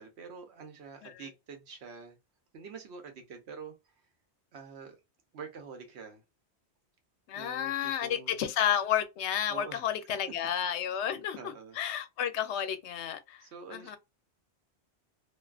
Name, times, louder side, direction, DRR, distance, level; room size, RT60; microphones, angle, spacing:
voice 1, 0.0-2.2 2.5-3.9 4.5-5.0 5.3-6.2 7.3-8.4 9.5-9.9 11.1-11.8 13.4-14.0, right 5 dB, 75° right, 1.0 m, -46 dB
voice 2, 7.3-11.4 11.8-13.4 13.7-14.0, left 10 dB, 90° left, 0.9 m, -31 dB
2.6 x 2.3 x 2.3 m
omnidirectional pair, 1.1 m